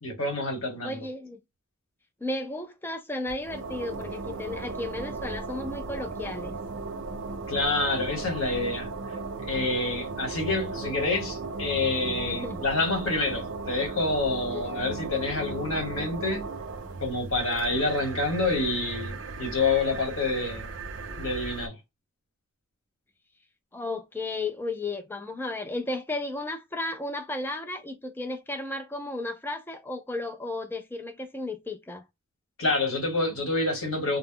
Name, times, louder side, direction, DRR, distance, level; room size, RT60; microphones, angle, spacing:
voice 1, 0.0-1.0 7.5-8.9 9.4-16.4 17.0-20.7 21.2-21.7 32.6-34.2, left 3 dB, 80° left, 1.2 m, -27 dB
voice 2, 0.8-1.4 2.2-6.6 12.0-12.6 14.5-14.8 23.7-32.0, left 2 dB, 10° left, 0.3 m, -34 dB
sound 1, 3.3-21.7, right 3 dB, 60° right, 0.5 m, -36 dB
2.0 x 2.0 x 3.6 m
head